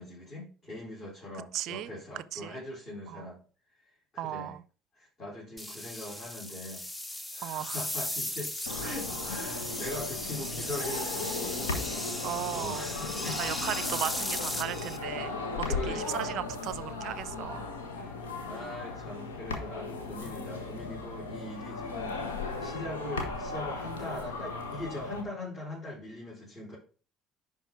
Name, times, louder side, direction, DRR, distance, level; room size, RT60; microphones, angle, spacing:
voice 1, 0.0-3.4 4.1-4.6 5.0-6.9 7.3-8.5 8.8-11.8 12.5-13.9 15.7-16.3 18.0-18.2 18.5-22.2 22.6-26.8, left 1 dB, 35° left, 3.8 m, -41 dB
voice 2, 1.5-2.6 3.1-3.3 4.2-4.6 7.4-7.8 8.8-8.9 12.2-12.9 13.4-17.7, right 13 dB, 55° right, 0.4 m, -37 dB
sound 1, 5.6-15.0, left 1 dB, 10° left, 0.9 m, -36 dB
sound 2, 8.7-25.2, left 3 dB, 75° left, 1.4 m, -37 dB
10.5 x 4.1 x 4.8 m
figure-of-eight pair, 55°, 0 cm